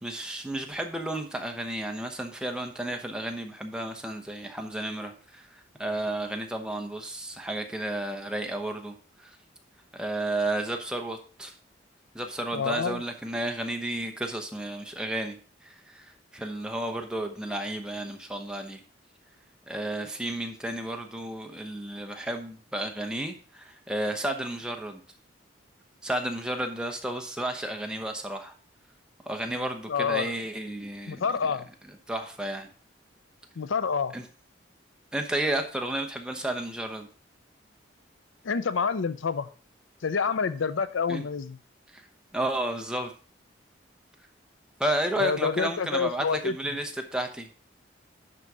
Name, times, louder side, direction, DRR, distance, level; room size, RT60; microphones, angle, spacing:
voice 1, 0.0-9.4 9.9-11.5 12.1-18.8 19.7-25.0 26.0-28.5 29.2-31.2 32.1-32.7 34.1-34.2 35.1-37.1 41.1-41.2 41.9-42.1 42.3-43.1 44.8-47.5, right 1 dB, 5° right, 4 dB, 0.8 m, -32 dB
voice 2, 12.5-13.0 29.9-30.4 31.1-31.7 33.6-34.1 38.4-39.5 40.0-41.6 45.2-46.5, left 5 dB, 90° left, 14 dB, 0.5 m, -28 dB
11.0 x 4.1 x 4.7 m, 0.40 s
head